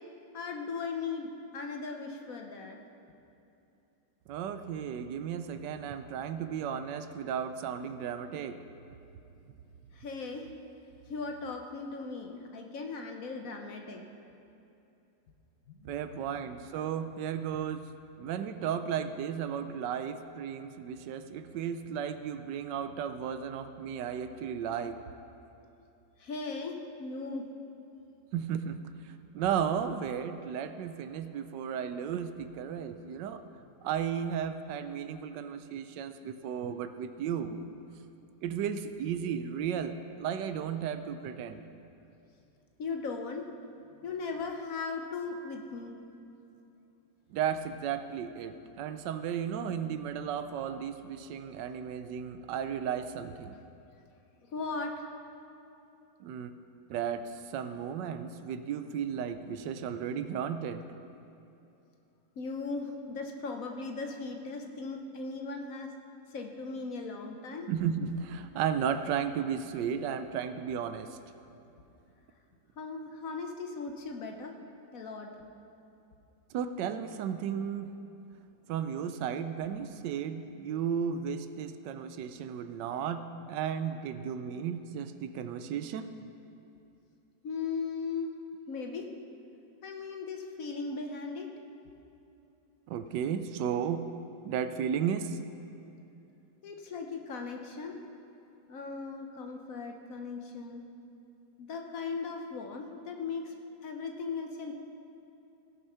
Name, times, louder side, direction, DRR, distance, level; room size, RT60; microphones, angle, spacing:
voice 1, 0.3-2.8 9.9-10.5 11.1-14.1 15.7-16.2 26.2-27.5 42.8-43.5 44.0-45.9 54.5-55.1 59.9-60.0 62.4-65.9 66.3-67.7 72.8-74.5 74.9-75.3 87.4-88.4 88.7-89.1 89.8-91.5 96.6-98.0 98.7-100.8 101.6-103.5 103.8-104.7, left 4 dB, 60° left, 3 dB, 1.1 m, -38 dB
voice 2, 4.3-8.6 15.8-17.9 18.2-25.0 28.3-33.4 33.8-37.7 38.4-41.6 47.3-53.5 56.2-56.5 56.9-60.8 67.7-71.2 76.5-77.9 78.7-86.1 92.9-94.0 94.4-95.4, right 8 dB, 80° right, 10 dB, 1.2 m, -34 dB
16.5 x 6.3 x 5.6 m, 2.8 s
omnidirectional pair, 1.9 m